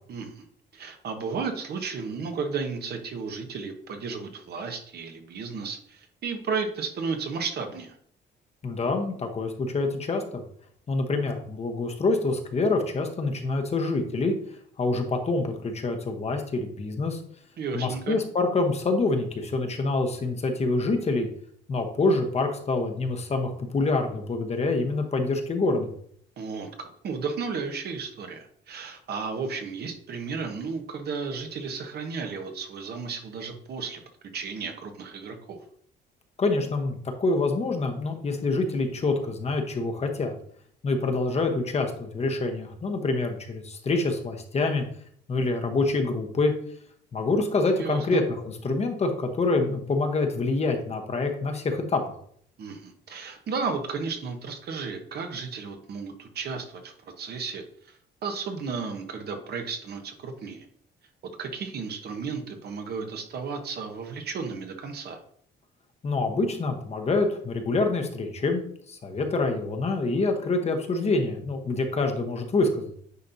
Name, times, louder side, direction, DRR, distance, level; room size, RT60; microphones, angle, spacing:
voice 1, 0.1-0.4 0.7-7.9 17.6-18.2 26.4-34.0 34.3-35.6 47.8-48.2 52.6-57.6 58.2-60.6 61.4-65.2, right 5 dB, 60° right, 5 dB, 1.0 m, -33 dB
voice 2, 8.6-10.4 10.9-14.3 14.8-17.2 17.7-21.3 21.7-25.9 36.4-40.3 40.8-44.8 45.3-46.5 47.1-52.0 66.0-73.0, left 3 dB, 35° left, 4 dB, 1.0 m, -26 dB
9.4 x 4.2 x 2.7 m, 0.62 s
cardioid pair, 115°, 19 cm